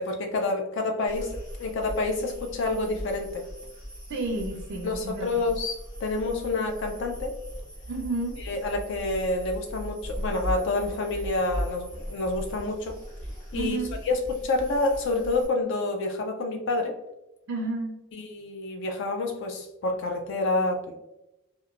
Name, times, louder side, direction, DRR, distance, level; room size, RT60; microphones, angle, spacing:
voice 1, 0.0-1.3 1.6-3.4 4.8-5.7 6.0-7.4 8.4-13.0 13.5-13.8 14.0-17.0 18.1-21.0, left 2 dB, 60° left, 3 dB, 0.4 m, -28 dB
sound 1, 1.1-15.5, equal, 40° left, 1.3 m, -38 dB
voice 2, 4.1-5.5 7.9-8.3 13.5-13.9 17.5-18.0, right 2 dB, 70° right, 0 dB, 0.4 m, -31 dB
2.9 x 2.0 x 2.4 m, 0.93 s
head